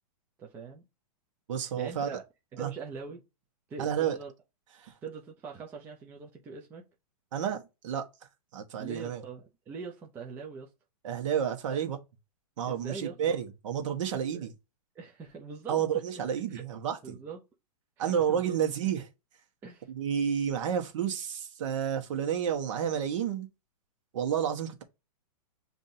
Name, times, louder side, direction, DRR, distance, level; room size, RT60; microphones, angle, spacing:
voice 1, 0.4-0.9 1.6-2.2 2.5-3.2 3.7-4.3 5.0-6.8 8.8-10.7 11.5-11.8 12.6-13.4 14.1-14.5 14.9-15.9 16.5-16.7 17.0-17.4 18.0-18.6 19.6-19.9, right 5 dB, 10° right, 0.4 m, -42 dB
voice 2, 1.5-2.2 2.6-2.7 3.8-4.2 4.8-4.9 7.3-8.1 8.5-9.2 11.0-12.0 12.6-14.5 15.7-17.2 18.0-19.1 19.9-23.5 24.1-24.8, right 8 dB, 55° right, 1.2 m, -30 dB
7.2 x 2.7 x 2.7 m
hypercardioid pair, 160°, 20 cm